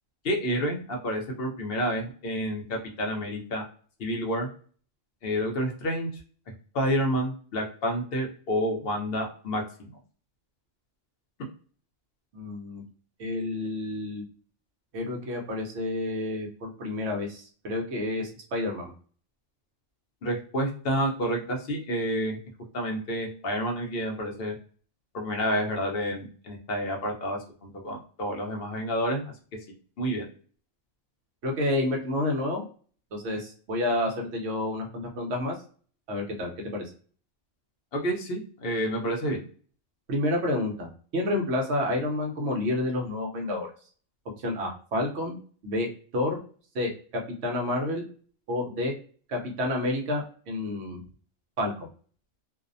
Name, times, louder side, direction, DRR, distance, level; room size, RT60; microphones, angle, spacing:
voice 1, 0.2-3.6 4.0-4.5 5.2-6.1 6.7-9.9 20.2-22.4 22.7-24.6 25.1-29.3 30.0-30.3 37.9-39.5, equal, 55° left, 1 dB, 0.7 m, -29 dB
voice 2, 12.3-12.8 13.2-14.2 14.9-18.9 31.4-32.7 33.1-35.5 36.1-36.8 40.1-43.7 44.4-45.4 45.6-46.4 46.7-46.9 47.4-48.0 48.5-48.9 49.3-51.0 51.6-51.9, left 1 dB, 65° right, 1 dB, 0.9 m, -29 dB
2.6 x 2.0 x 2.5 m, 0.43 s
omnidirectional pair, 1.3 m